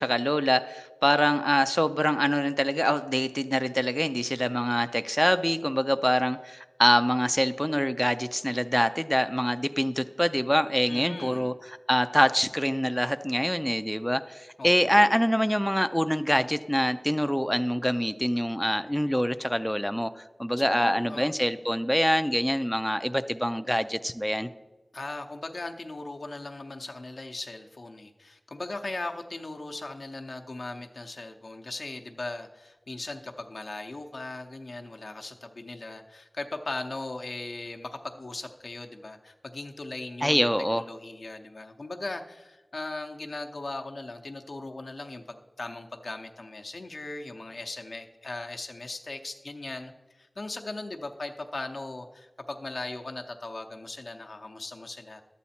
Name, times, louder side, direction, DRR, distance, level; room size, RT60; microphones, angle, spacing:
voice 1, 0.0-24.5 40.2-40.8, equal, 5° left, 10 dB, 0.3 m, -25 dB
voice 2, 10.9-11.5 14.6-15.0 20.6-21.3 24.9-55.2, left 2 dB, 80° left, 4 dB, 0.7 m, -38 dB
11.5 x 8.3 x 4.3 m, 1.2 s
wide cardioid pair, 50°, 0 cm